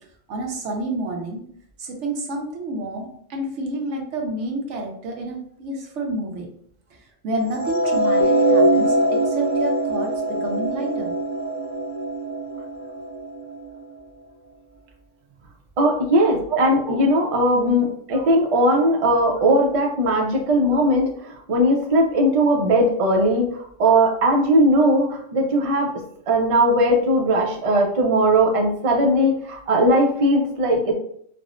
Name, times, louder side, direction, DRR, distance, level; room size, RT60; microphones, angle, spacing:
voice 1, 0.3-1.4 1.8-6.5 7.2-11.1 16.5-16.9 18.1-18.2, right 2 dB, 70° right, 1 dB, 1.0 m, -29 dB
sound 1, 7.6-13.8, right 1 dB, 15° left, 0.7 m, -22 dB
voice 2, 15.8-25.9 26.3-30.9, right 1 dB, 50° right, 1 dB, 0.4 m, -19 dB
4.7 x 2.0 x 2.4 m, 0.64 s
omnidirectional pair, 1.3 m